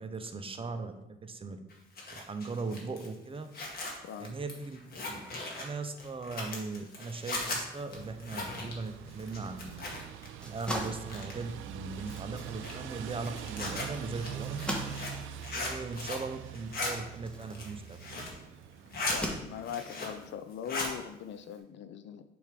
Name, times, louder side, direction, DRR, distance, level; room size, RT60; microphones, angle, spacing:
voice 1, 0.0-1.6 2.1-3.5 4.2-4.8 5.1-5.2 5.6-9.8 10.4-14.7 15.5-18.0, right 4 dB, 30° right, 8 dB, 0.7 m, -39 dB
Zipper (clothing), 1.7-10.3 10.5-11.5 12.0-16.3 16.5-16.9 17.4-18.4 18.7-19.2 19.5-20.3 20.5-20.9, left 2 dB, 50° left, 1.7 m, -38 dB
voice 2, 4.0-4.3 19.1-22.2, left 9 dB, 70° left, 11 dB, 0.5 m, -41 dB
sound 1, 7.9-19.7, right 9 dB, 85° right, 0.4 m, -44 dB
sound 2, 10.2-18.3 18.9-20.0, equal, 5° left, 1.2 m, -42 dB
7.0 x 3.5 x 5.0 m, 0.94 s
cardioid pair, 90°, 20 cm